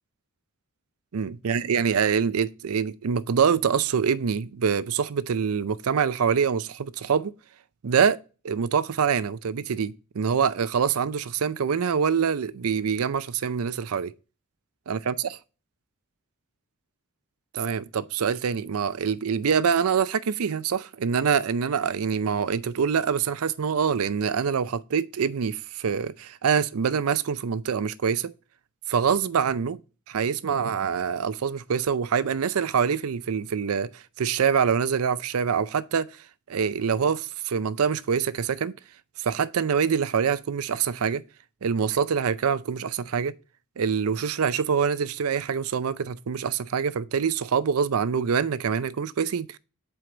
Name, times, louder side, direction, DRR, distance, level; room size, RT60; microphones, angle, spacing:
voice 1, 1.1-7.3 7.8-8.2 8.4-14.1 14.9-15.3 17.5-28.3 28.9-29.8 30.1-36.1 36.5-38.8 39.2-41.2 41.6-43.3 43.8-49.6, right 6 dB, 75° right, 0.5 m, -25 dB
7.9 x 4.6 x 3.8 m
head